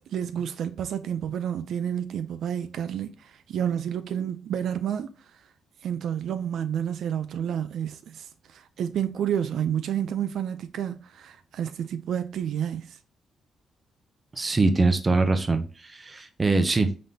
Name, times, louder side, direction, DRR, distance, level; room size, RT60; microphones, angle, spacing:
voice 1, 0.0-5.1 5.8-13.0, right 9 dB, 70° right, 0.3 m, -30 dB
voice 2, 14.3-17.0, right 3 dB, 20° right, 0.6 m, -23 dB
3.8 x 3.5 x 2.7 m
cardioid pair, 130°, 0 cm